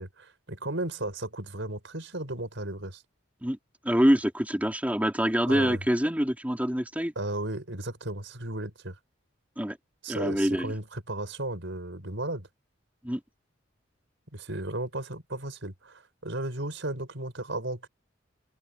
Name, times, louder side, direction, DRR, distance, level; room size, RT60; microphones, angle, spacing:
voice 1, 0.0-3.0 5.5-5.8 7.1-9.0 10.0-12.5 14.3-17.9, right 2 dB, 70° right, 5.1 m, -35 dB
voice 2, 3.8-7.1 9.6-9.8 10.1-10.7 13.0-13.2, equal, 10° right, 3.0 m, -25 dB
head